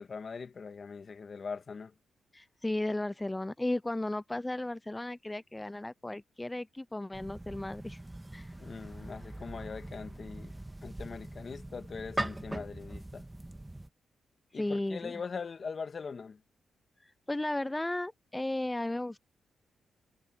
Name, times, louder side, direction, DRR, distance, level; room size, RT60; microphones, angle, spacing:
voice 1, 0.0-1.9 8.6-10.5 10.8-13.2 14.5-16.4, left 5 dB, 50° left, 1.8 m, -41 dB
voice 2, 2.3-8.0 8.3-8.5 14.5-15.1 17.0-19.2, left 1 dB, 15° left, 0.5 m, -35 dB
sound 1, 7.1-13.9, right 1 dB, 15° right, 1.7 m, -41 dB
supercardioid pair, 60°, 0 cm